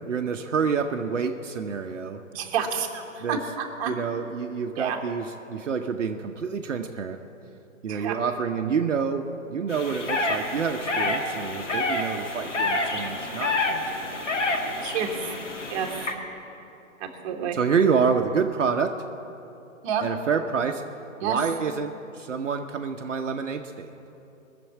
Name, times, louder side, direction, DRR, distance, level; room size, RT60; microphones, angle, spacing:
voice 1, 0.0-2.2 3.2-3.4 3.9-7.2 7.8-14.2 17.5-19.0 20.0-20.8 21.2-23.9, right 6 dB, 65° right, 4 dB, 0.9 m, -28 dB
voice 2, 2.3-3.9 4.8-5.0 7.9-8.2 14.8-15.4 15.7-16.1 17.0-17.6 19.8-20.0 21.2-21.4, right 7 dB, 25° right, 1 dB, 1.4 m, -29 dB
sound 1, 9.7-16.1, left 2 dB, 60° left, 2.1 m, -28 dB
20.5 x 7.0 x 8.4 m, 3.0 s
figure-of-eight pair, 130°, 40 cm